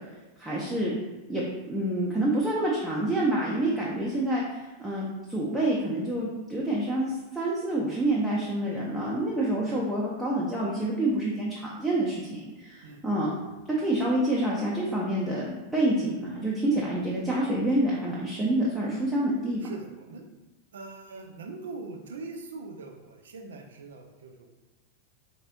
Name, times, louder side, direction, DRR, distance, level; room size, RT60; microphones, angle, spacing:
voice 1, 0.4-0.9 1.3-13.3 13.8-15.5 15.7-19.7, right 1 dB, 10° right, -5 dB, 0.6 m, -27 dB
voice 2, 19.6-20.2 20.7-24.5, right 3 dB, 65° right, 4 dB, 0.4 m, -42 dB
4.0 x 2.7 x 2.6 m, 1.2 s
figure-of-eight pair, 90°, 0 cm